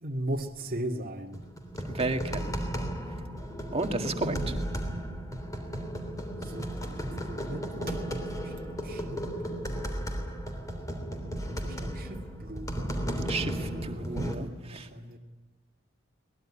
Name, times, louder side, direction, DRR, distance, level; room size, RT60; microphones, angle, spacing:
voice 1, 0.0-1.4 4.2-4.6 6.4-9.9 11.6-13.0 13.2-15.2, right 1 dB, 45° right, 1 dB, 2.0 m, -39 dB
sound 1, 1.3-14.4, equal, 15° left, 3.3 m, -34 dB
voice 2, 1.9-2.5 3.7-4.3 13.3-14.9, right 2 dB, 30° right, 5 dB, 2.1 m, -32 dB
23.0 x 20.5 x 9.9 m, 1.2 s
head